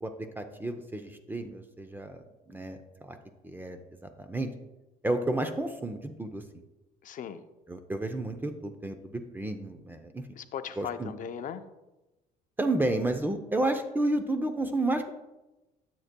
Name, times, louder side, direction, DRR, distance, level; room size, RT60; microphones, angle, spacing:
voice 1, 0.0-3.2 3.4-4.5 5.0-6.4 7.7-10.2 10.8-11.1 12.6-15.1, right 2 dB, 10° right, 7 dB, 0.6 m, -31 dB
voice 2, 7.0-7.5 10.4-11.6, left 8 dB, 50° left, 10 dB, 0.6 m, -38 dB
9.6 x 7.4 x 2.2 m, 1.0 s
cardioid pair, 110°, 17 cm